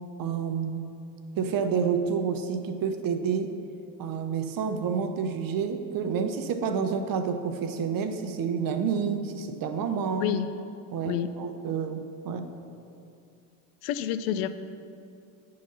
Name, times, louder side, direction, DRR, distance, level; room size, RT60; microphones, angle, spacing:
voice 1, 0.2-0.8 1.4-3.5 4.0-10.4 10.9-12.5, right 6 dB, 45° right, 7 dB, 0.7 m, -29 dB
voice 2, 13.8-14.5, left 10 dB, 75° left, 11 dB, 0.5 m, -28 dB
9.3 x 3.8 x 5.4 m, 2.5 s
supercardioid pair, 85°, 46 cm